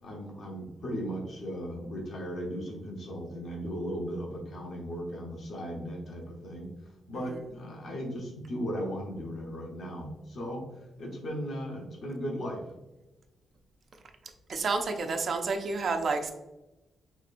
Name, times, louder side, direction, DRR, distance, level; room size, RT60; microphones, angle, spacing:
voice 1, 0.0-6.7 7.1-10.6 11.0-12.6, equal, 45° left, -1 dB, 0.9 m, -37 dB
voice 2, 14.5-16.3, right 4 dB, 40° right, 5 dB, 0.4 m, -29 dB
4.2 x 3.3 x 2.5 m, 1.0 s
wide cardioid pair, 165°, 0 cm